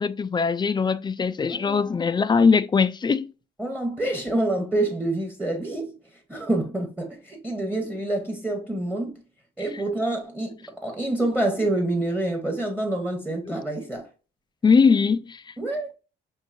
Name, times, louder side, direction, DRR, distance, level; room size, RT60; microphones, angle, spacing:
voice 1, 0.0-3.3 14.6-15.4, left 5 dB, 20° left, 0.3 m, -21 dB
voice 2, 1.4-2.1 3.6-6.0 6.3-9.2 9.6-14.1 15.6-15.9, right 2 dB, 5° right, 1.0 m, -27 dB
5.5 x 2.6 x 2.5 m
cardioid pair, 90°, 20 cm